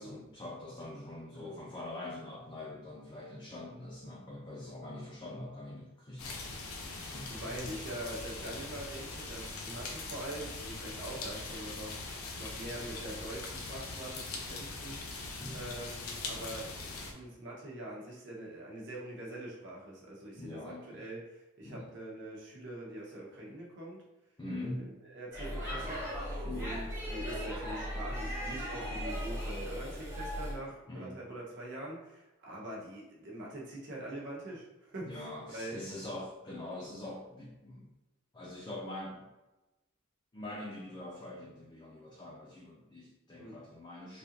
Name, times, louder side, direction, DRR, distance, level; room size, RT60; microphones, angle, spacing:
voice 1, 0.0-6.4 7.0-7.7 15.4-15.7 20.3-21.1 21.6-21.9 24.4-25.0 26.4-26.8 30.9-31.2 35.0-37.9 38.3-39.3 40.3-44.2, left 1 dB, 20° left, -4 dB, 0.4 m, -44 dB
sound 1, 6.2-17.1, left 3 dB, 75° left, 0.6 m, -41 dB
voice 2, 7.0-24.0 24.6-24.8 25.1-26.0 26.5-35.7 43.4-43.6, right 1 dB, 55° right, -4 dB, 0.9 m, -44 dB
Speech / Shout / Subway metro underground, 25.3-30.6, equal, 10° right, 0.8 m, -37 dB
3.4 x 2.5 x 2.9 m, 1.0 s
head